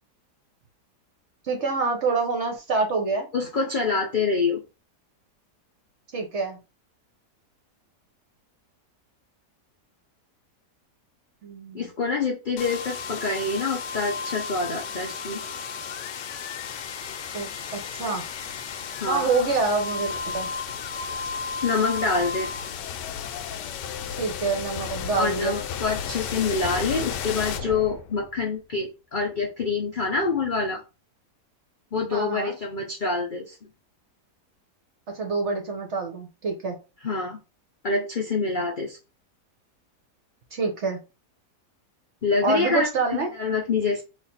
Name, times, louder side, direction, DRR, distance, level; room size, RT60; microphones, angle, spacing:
voice 1, 1.4-3.3 6.1-6.6 11.4-11.9 17.3-18.2 19.1-20.5 24.2-25.6 32.1-32.6 35.1-36.8 40.5-41.0 42.4-43.3, right 4 dB, 50° right, 3 dB, 0.9 m, -26 dB
voice 2, 3.3-4.6 11.7-15.4 19.0-19.3 21.6-22.5 25.2-30.8 31.9-33.6 37.0-37.4 37.8-39.0 42.2-44.0, left 4 dB, 65° left, 0 dB, 0.4 m, -26 dB
sound 1, 12.6-28.4, left 6 dB, 85° left, 1.2 m, -33 dB
3.2 x 2.4 x 4.2 m, 0.29 s
omnidirectional pair, 1.8 m